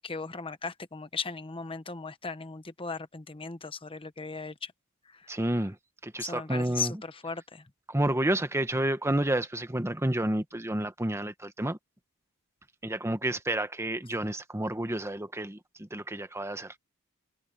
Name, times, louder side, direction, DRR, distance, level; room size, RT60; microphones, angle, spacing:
voice 1, 0.0-4.7 5.1-5.3 6.2-7.6, left 4 dB, 25° left, 1.0 m, -37 dB
voice 2, 5.3-5.8 6.0-7.0 7.9-11.8 12.8-16.8, right 1 dB, 10° right, 1.1 m, -30 dB
head